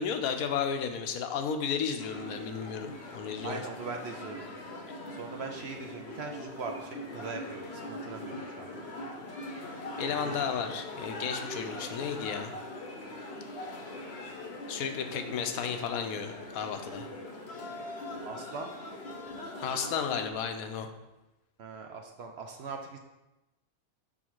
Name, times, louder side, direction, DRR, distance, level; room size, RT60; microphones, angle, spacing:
voice 1, 0.0-3.6 10.0-12.5 14.7-17.1 19.6-20.9, left 7 dB, 80° left, 6 dB, 1.1 m, -33 dB
sound 1, 2.0-20.3, left 1 dB, 55° left, 0.9 m, -41 dB
voice 2, 3.4-4.5 5.1-8.8 10.1-10.5 18.2-18.7 21.6-23.0, right 4 dB, 60° right, 3 dB, 0.7 m, -41 dB
6.3 x 3.7 x 4.5 m, 0.99 s
omnidirectional pair, 1.5 m